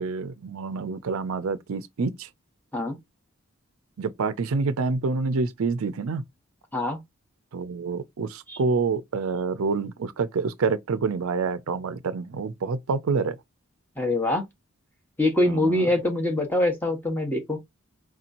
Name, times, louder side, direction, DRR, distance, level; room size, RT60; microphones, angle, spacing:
voice 1, 0.0-2.3 4.0-6.2 7.5-13.4 15.4-15.9, right 4 dB, 75° right, 0.5 m, -27 dB
voice 2, 14.0-14.4 15.2-17.6, left 1 dB, 10° left, 0.9 m, -24 dB
4.6 x 2.9 x 2.5 m
head